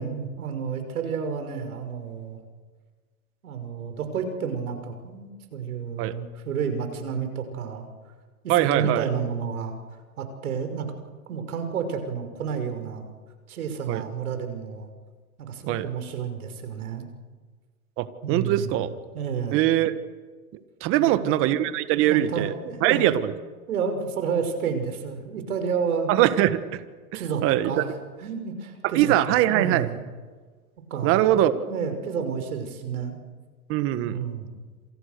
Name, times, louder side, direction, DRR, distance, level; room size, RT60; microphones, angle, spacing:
voice 1, 0.0-2.4 3.4-7.9 8.4-9.8 10.2-10.9 11.3-13.1 13.5-14.9 15.4-17.1 18.2-18.8 19.1-19.6 21.1-21.7 22.1-23.1 23.7-26.1 27.1-30.0 30.9-31.3 31.5-33.2 34.0-34.5, right 6 dB, 75° right, 7 dB, 5.9 m, -30 dB
voice 2, 8.5-9.1 13.9-14.0 15.7-15.9 18.0-18.9 19.5-20.0 20.8-22.5 22.8-23.3 26.1-26.8 27.1-27.8 28.9-29.9 31.0-31.5 33.7-34.2, right 13 dB, 30° right, 12 dB, 1.5 m, -22 dB
28.0 x 27.0 x 6.8 m, 1.5 s
hypercardioid pair, 145°, 44 cm